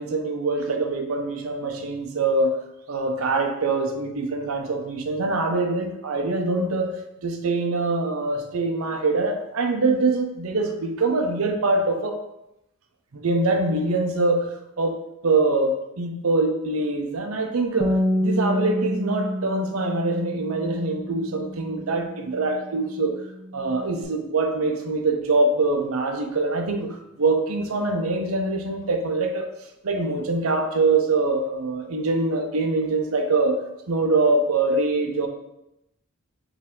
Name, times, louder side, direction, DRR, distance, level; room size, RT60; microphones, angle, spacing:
voice 1, 0.0-2.6 2.9-6.9 7.2-12.2 13.1-14.5 14.8-23.2 23.5-29.5 29.8-35.3, right 3 dB, 85° right, 4 dB, 0.6 m, -24 dB
Bass guitar, 17.8-24.0, equal, 20° right, 0.3 m, -29 dB
4.4 x 2.7 x 3.6 m, 0.86 s
head